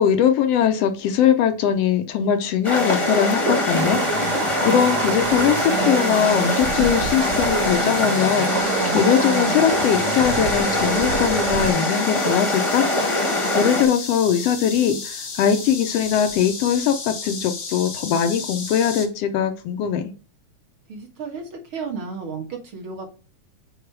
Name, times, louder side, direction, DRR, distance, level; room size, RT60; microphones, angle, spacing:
voice 1, 0.0-13.2 13.5-20.1, left 8 dB, 75° left, 8 dB, 1.5 m, -21 dB
sound 1, 2.6-13.8, left 1 dB, 15° left, 1.0 m, -23 dB
sound 2, 2.7-19.1, left 4 dB, 50° left, 0.9 m, -34 dB
sound 3, 3.7-11.7, right 8 dB, 85° right, 2.1 m, -29 dB
voice 2, 20.9-23.1, right 5 dB, 50° right, 1 dB, 2.0 m, -33 dB
6.4 x 4.7 x 4.6 m, 0.36 s
omnidirectional pair, 3.5 m